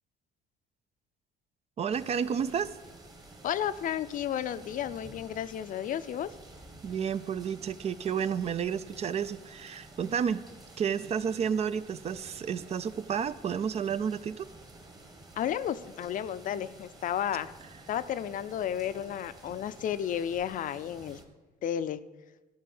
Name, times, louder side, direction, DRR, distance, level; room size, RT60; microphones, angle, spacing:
voice 1, 1.8-2.7 6.8-10.4 10.8-14.5, right 7 dB, 40° right, 15 dB, 0.4 m, -31 dB
sound 1, 1.9-21.3, right 2 dB, 25° right, 1.5 m, -52 dB
voice 2, 3.4-6.3 15.4-17.5 17.9-21.2 21.6-22.0, left 10 dB, 50° left, 13 dB, 0.5 m, -32 dB
13.5 x 4.6 x 7.8 m, 1.2 s
cardioid pair, 110°, 17 cm